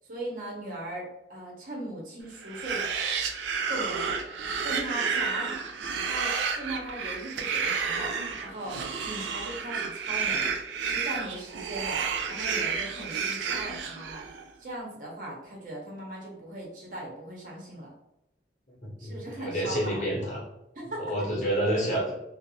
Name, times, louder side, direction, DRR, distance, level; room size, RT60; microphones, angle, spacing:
voice 1, 0.1-2.8 3.7-4.2 4.6-5.6 6.0-8.1 8.4-8.8 9.0-10.5 10.8-12.0 12.3-14.3 14.6-17.9 19.0-20.0 20.8-21.0, right 1 dB, 50° right, -2 dB, 0.7 m, -38 dB
sound 1, 2.4-14.4, right 5 dB, 90° right, 0.4 m, -31 dB
voice 2, 18.7-20.4 21.0-22.1, right 1 dB, 40° left, -4 dB, 0.9 m, -29 dB
2.4 x 2.1 x 2.8 m, 0.86 s
head